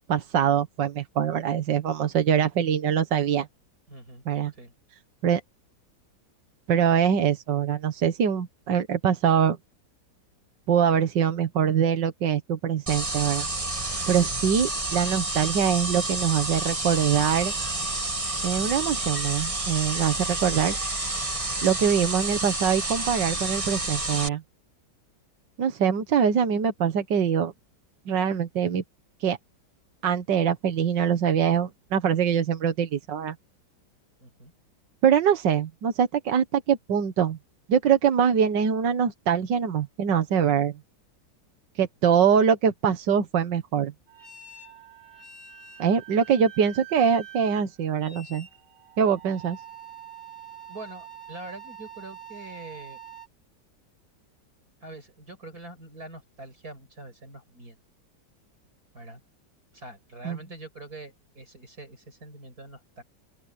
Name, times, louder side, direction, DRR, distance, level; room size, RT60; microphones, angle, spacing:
voice 1, 0.1-3.5 4.3-4.5 5.2-5.4 6.7-9.6 10.7-13.5 14.1-17.5 18.4-20.8 21.6-24.4 25.6-27.5 28.1-28.8 29.2-29.4 30.0-33.4 35.0-37.4 37.7-40.7 41.8-43.9 45.8-48.5 49.0-49.6 60.3-60.4, right 8 dB, 80° right, 1.9 m, -23 dB
voice 2, 3.9-4.2 4.5-4.7 34.2-34.5 50.7-53.0 54.8-57.8 58.9-59.2 59.7-63.0, right 2 dB, 55° right, 6.8 m, -44 dB
sound 1, 12.9-24.3, right 2 dB, 20° right, 1.8 m, -29 dB
sound 2, 44.1-53.3, right 8 dB, 50° left, 7.2 m, -45 dB
open air
omnidirectional pair, 1.9 m